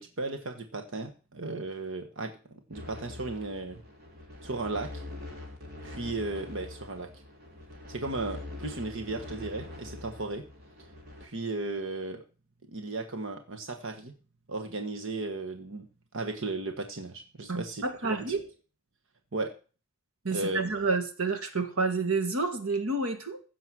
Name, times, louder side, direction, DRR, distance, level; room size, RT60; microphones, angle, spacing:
voice 1, 0.0-3.8 4.4-5.0 5.8-7.2 7.9-10.5 11.2-12.2 12.7-14.1 14.5-15.9 16.1-18.3 19.3-19.5 20.3-20.6, right 2 dB, 65° right, 1.4 m, -35 dB
sound 1, 2.7-11.3, left 2 dB, 50° right, 3.8 m, -44 dB
voice 2, 17.5-18.4 20.2-23.4, right 3 dB, 85° right, 1.9 m, -29 dB
15.5 x 6.9 x 6.2 m
head